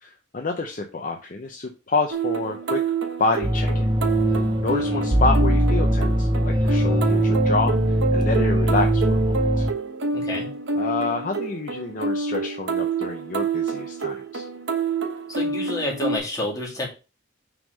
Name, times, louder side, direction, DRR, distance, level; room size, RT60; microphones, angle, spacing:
voice 1, 0.0-2.8 3.2-3.9 4.3-9.7 10.8-14.5, left 3 dB, 45° left, 3 dB, 0.6 m, -28 dB
sound 1, 2.1-16.2, right 4 dB, 85° right, 1.0 m, -27 dB
sound 2, 3.4-9.7, equal, 25° right, 0.5 m, -21 dB
voice 2, 4.7-5.1 10.1-10.5 15.3-16.9, left 1 dB, 20° left, -3 dB, 2.4 m, -29 dB
5.9 x 3.7 x 5.2 m, 0.31 s
head